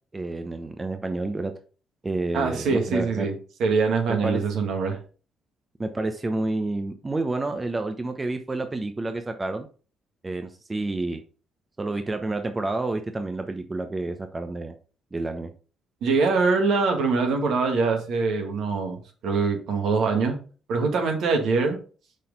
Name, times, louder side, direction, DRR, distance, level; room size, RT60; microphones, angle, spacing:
voice 1, 0.1-1.5 2.0-3.3 4.1-4.4 5.8-9.7 10.2-11.2 11.8-14.7 15.1-15.5, right 2 dB, 25° right, 7 dB, 0.9 m, -29 dB
voice 2, 2.3-3.3 3.6-5.0 16.0-20.4 20.7-21.8, right 4 dB, 70° right, 3 dB, 1.9 m, -23 dB
6.4 x 4.3 x 5.3 m, 0.37 s
hypercardioid pair, 55°, 0 cm